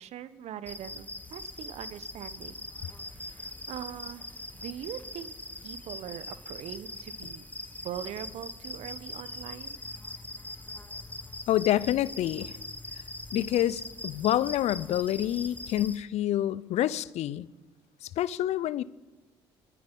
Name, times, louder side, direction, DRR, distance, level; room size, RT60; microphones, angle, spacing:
voice 1, 0.0-2.7 3.1-4.2 4.5-5.3 5.6-7.4 7.8-9.8, right 10 dB, 60° right, 1.0 m, -41 dB
sound 1, 0.6-16.0, left 1 dB, 15° left, 1.5 m, -42 dB
voice 2, 11.5-12.5 13.3-17.5 18.0-18.8, left 12 dB, 60° left, 0.6 m, -27 dB
24.0 x 9.4 x 5.5 m
hypercardioid pair, 55°, 12 cm